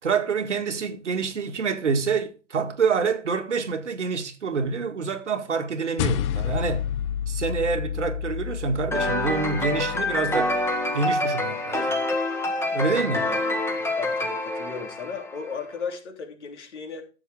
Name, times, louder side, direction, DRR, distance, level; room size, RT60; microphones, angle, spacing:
voice 1, 0.0-6.9 7.3-10.6 10.9-12.0 12.7-13.3, right 5 dB, 75° right, 2.0 m, -27 dB
sound 1, 6.0-10.6, left 10 dB, 25° left, 0.5 m, -30 dB
sound 2, 8.9-15.5, left 2 dB, 5° left, 1.5 m, -26 dB
voice 2, 14.0-17.0, left 5 dB, 65° left, 3.1 m, -35 dB
14.0 x 7.4 x 3.6 m
figure-of-eight pair, 115°, 37 cm